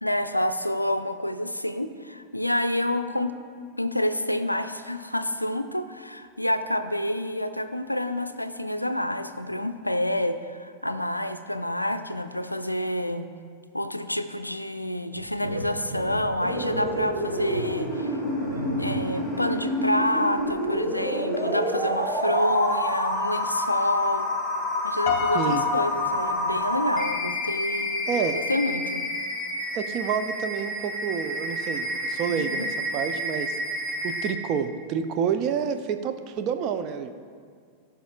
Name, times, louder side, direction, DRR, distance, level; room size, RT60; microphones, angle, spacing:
voice 1, 0.0-3.3 3.8-13.3 13.7-18.3 18.8-24.3 24.8-28.1 28.3-29.0 32.4-32.7, left 1 dB, 85° left, 10 dB, 0.4 m, -28 dB
sound 1, 15.1-19.3 19.6-19.8 20.2-21.0 21.3-21.4 21.8-21.9, right 2 dB, 80° right, 0.7 m, -36 dB
sound 2, 16.4-34.3, left 1 dB, 5° left, 2.1 m, -28 dB
Piano, 25.1-27.3, left 6 dB, 40° left, 1.0 m, -31 dB
voice 2, 25.3-25.6 28.1-28.4 29.7-32.7 32.9-33.5 34.0-37.1, right 7 dB, 40° right, 7 dB, 0.5 m, -28 dB
16.0 x 5.7 x 2.4 m, 2.1 s
figure-of-eight pair, 90°, 0 cm